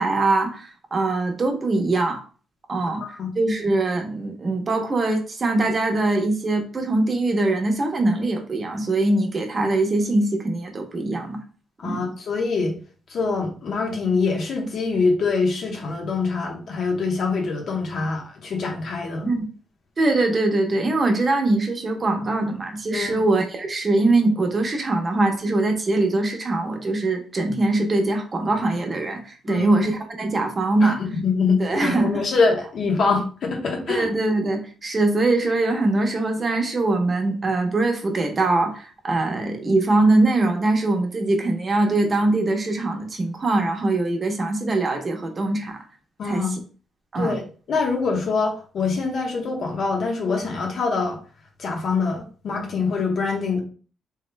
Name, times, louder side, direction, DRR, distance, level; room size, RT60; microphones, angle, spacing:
voice 1, 0.0-2.2 2.7-11.4 11.8-12.0 19.2-19.5 20.0-31.0 31.6-32.3 33.9-45.8 46.2-46.4 47.1-47.3, right 2 dB, 35° right, 4 dB, 0.9 m, -22 dB
voice 2, 11.8-12.8 13.1-19.3 22.9-23.2 29.5-29.7 30.8-34.1 46.2-46.5 47.1-47.4 47.7-51.2 51.6-53.6, left 4 dB, 60° left, 1 dB, 1.1 m, -24 dB
3.5 x 3.1 x 2.2 m, 0.39 s
cardioid pair, 85°, 0 cm